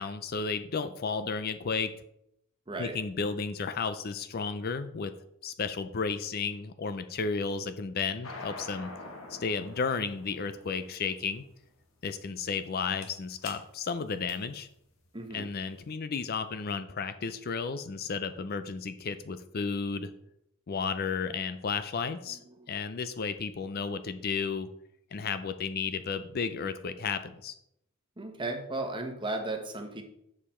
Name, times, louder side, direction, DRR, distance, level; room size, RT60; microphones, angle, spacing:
voice 1, 0.0-1.9 2.8-5.1 5.4-8.9 9.3-11.4 12.0-14.7 15.3-20.1 20.7-22.4 22.7-24.7 25.1-27.5, left 5 dB, 45° left, 11 dB, 0.5 m, -33 dB
sound 1, 8.2-15.8, left 2 dB, 70° left, 1.5 m, -47 dB
voice 2, 15.1-15.5 22.5-22.7 28.2-30.0, right 2 dB, 20° right, 4 dB, 1.2 m, -35 dB
7.2 x 6.6 x 4.4 m, 0.75 s
head